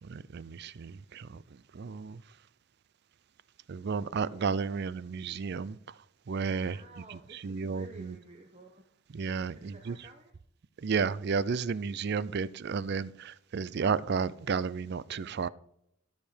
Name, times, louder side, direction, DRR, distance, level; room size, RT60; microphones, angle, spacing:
voice 1, 0.0-1.4 1.7-2.2 3.7-5.8 6.3-6.8 7.1-8.1 9.1-10.0 10.8-15.5, right 5 dB, 55° right, 19 dB, 0.4 m, -32 dB
voice 2, 6.6-8.8 9.5-10.3, right 2 dB, 30° right, 3 dB, 1.1 m, -52 dB
13.0 x 6.7 x 5.0 m, 0.74 s
head